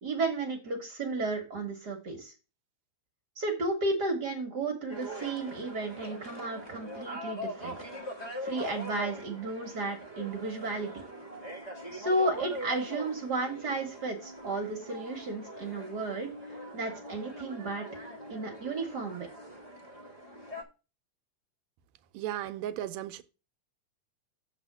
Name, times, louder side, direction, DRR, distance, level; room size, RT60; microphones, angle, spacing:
voice 1, 0.0-2.3 3.4-7.8 8.4-10.9 11.9-16.3 16.7-17.9 18.3-19.3, right 2 dB, 50° right, 1.2 m, -33 dB
sound 1, 4.9-20.6, equal, 65° left, 0.4 m, -42 dB
voice 2, 22.1-23.2, right 12 dB, 80° right, 1.8 m, -35 dB
7.2 x 4.2 x 6.6 m
omnidirectional pair, 3.4 m